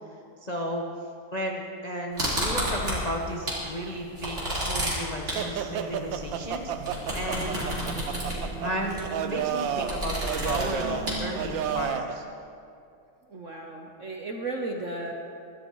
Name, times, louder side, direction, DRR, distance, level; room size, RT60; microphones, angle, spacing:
voice 1, 0.4-0.8 1.3-7.7 8.6-12.2, equal, 40° left, -1 dB, 0.5 m, -34 dB
sound 1, 2.2-3.7 4.0-11.8, equal, 30° right, 4.4 m, -32 dB
sound 2, 5.3-12.2, right 8 dB, 70° right, 1.3 m, -32 dB
voice 2, 13.3-15.1, right 2 dB, 55° right, 1 dB, 0.9 m, -34 dB
23.0 x 13.0 x 3.1 m, 2.5 s
omnidirectional pair, 2.3 m